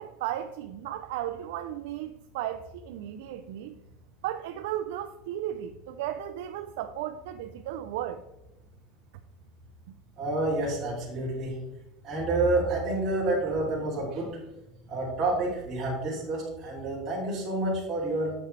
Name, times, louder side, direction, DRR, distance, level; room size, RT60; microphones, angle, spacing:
voice 1, 0.0-3.7 4.2-8.2, right 12 dB, 75° right, 8 dB, 0.4 m, -35 dB
voice 2, 10.2-11.5 12.0-14.4 14.9-18.3, right 2 dB, 25° right, -8 dB, 2.9 m, -29 dB
8.9 x 6.1 x 3.3 m, 0.93 s
supercardioid pair, 165°, 0 cm